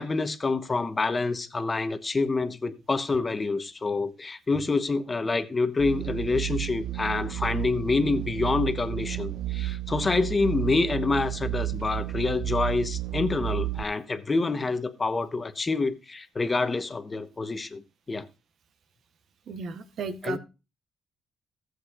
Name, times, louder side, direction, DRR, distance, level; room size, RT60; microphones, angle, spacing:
voice 1, 0.0-17.8 18.1-18.3 20.2-20.4, left 3 dB, 30° left, 1.0 m, -27 dB
sound 1, 5.8-13.8, right 15 dB, 85° right, 0.5 m, -32 dB
voice 2, 19.5-20.4, right 5 dB, 65° right, 1.0 m, -34 dB
15.0 x 7.8 x 2.4 m
cardioid pair, 90°, 0 cm